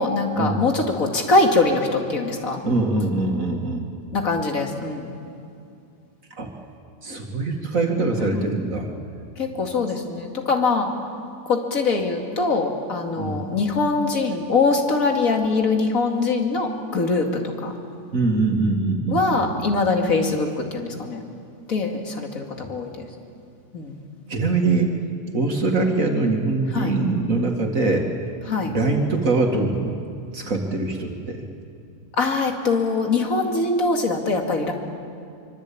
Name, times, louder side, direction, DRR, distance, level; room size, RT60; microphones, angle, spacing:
voice 1, 0.0-2.6 4.1-5.1 8.3-8.4 9.4-10.9 11.5-17.3 17.6-17.7 19.1-21.2 21.7-23.1 23.7-24.0 26.7-27.0 28.5-28.7 32.1-34.7, left 3 dB, 65° left, 2 dB, 2.7 m, -22 dB
voice 2, 2.6-3.9 6.4-6.5 7.0-8.9 13.2-13.4 18.1-19.7 24.3-25.0 25.3-28.1 28.6-30.0 30.3-31.4, right 3 dB, 65° right, 1 dB, 2.5 m, -23 dB
25.0 x 25.0 x 8.5 m, 2.5 s
omnidirectional pair, 1.6 m